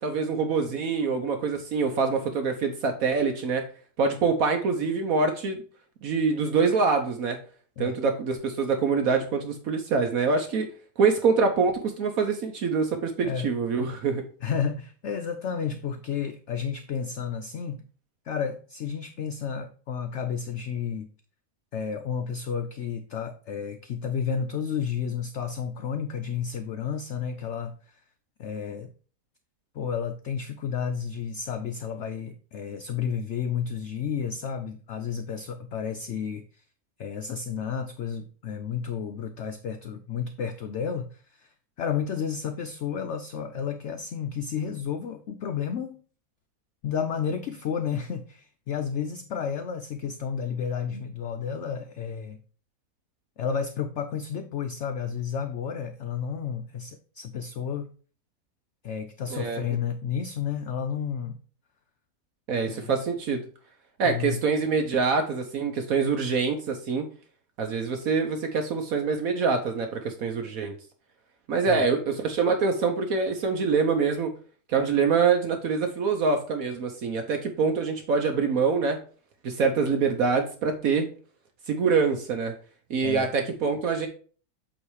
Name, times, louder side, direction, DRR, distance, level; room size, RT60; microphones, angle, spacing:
voice 1, 0.0-3.6 4.0-5.6 6.0-7.4 7.8-10.7 11.0-14.2 59.3-59.6 62.5-63.4 64.0-67.1 67.6-70.7 71.5-74.3 74.7-79.0 79.4-81.1 81.7-82.5 82.9-84.1, right 5 dB, 65° right, 5 dB, 1.2 m, -25 dB
voice 2, 14.4-17.8 18.3-21.1 21.7-28.0 28.4-28.9 29.7-36.6 37.0-46.0 46.8-52.4 53.4-57.9 58.8-61.4 62.6-62.9 64.0-64.4 71.7-71.8 83.0-83.3, left 7 dB, 65° left, 8 dB, 0.7 m, -31 dB
8.2 x 3.2 x 4.7 m, 0.41 s
omnidirectional pair, 1.6 m